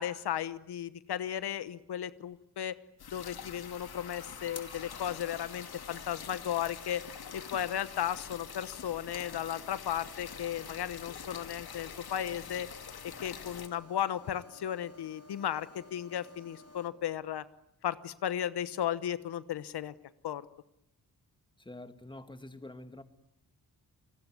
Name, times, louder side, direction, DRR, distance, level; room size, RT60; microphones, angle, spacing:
voice 1, 0.0-2.7 3.1-7.0 7.3-12.7 13.0-17.4 17.8-19.9 20.2-20.5, left 10 dB, 85° left, 1.1 m, -35 dB
sound 1, 3.0-13.7, left 7 dB, 70° left, 2.7 m, -46 dB
sound 2, 3.3-16.9, left 3 dB, 40° left, 4.1 m, -54 dB
voice 2, 21.6-23.0, left 2 dB, 10° left, 2.2 m, -46 dB
30.0 x 20.5 x 9.6 m
cardioid pair, 105°, 38 cm